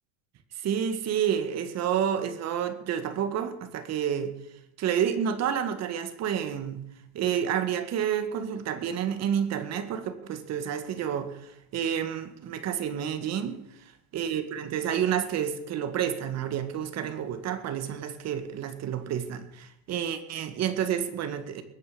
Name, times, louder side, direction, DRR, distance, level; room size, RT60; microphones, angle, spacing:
voice 1, 0.6-4.3 4.8-6.8 7.1-13.6 14.1-21.6, right 9 dB, 45° right, 2.2 m, -29 dB
21.5 x 9.6 x 5.3 m
supercardioid pair, 120°, 36 cm